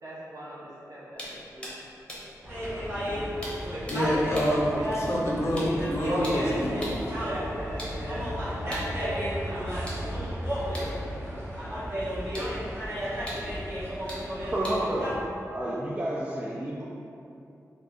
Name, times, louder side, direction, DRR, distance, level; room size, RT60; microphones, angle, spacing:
voice 1, 0.0-1.8 3.0-4.2 6.1-6.6 7.2-10.4 10.7-11.2 12.3-12.7, equal, 75° right, -8 dB, 0.9 m, -38 dB
sound 1, 1.1-7.1 7.6-16.1, equal, 15° left, 0.7 m, -45 dB
sound 2, 2.4-15.1, equal, 45° right, 1.1 m, -33 dB
voice 2, 3.9-7.0, equal, 50° left, -4 dB, 0.5 m, -27 dB
voice 3, 14.5-15.2 15.5-16.8, right 1 dB, 20° right, -5 dB, 0.3 m, -30 dB
4.2 x 2.3 x 2.4 m, 2.7 s
wide cardioid pair, 130°, 6 cm